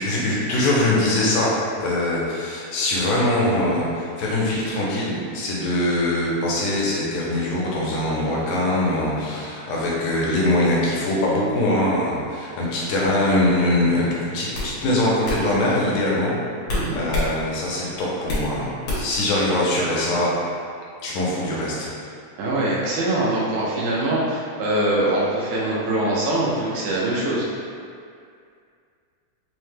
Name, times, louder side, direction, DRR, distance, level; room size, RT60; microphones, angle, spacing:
voice 1, 0.0-16.4 16.9-20.3 21.0-21.9, left 1 dB, 85° left, -5 dB, 2.1 m, -22 dB
sound 1, 13.7-14.0 14.5-14.7 15.2-15.4 16.7-17.3 17.7-18.5 18.9-19.2, left 2 dB, 60° left, 1.4 m, -26 dB
voice 2, 22.4-27.5, right 1 dB, 85° right, -7 dB, 2.2 m, -23 dB
5.6 x 2.1 x 3.2 m, 2.3 s
omnidirectional pair, 3.5 m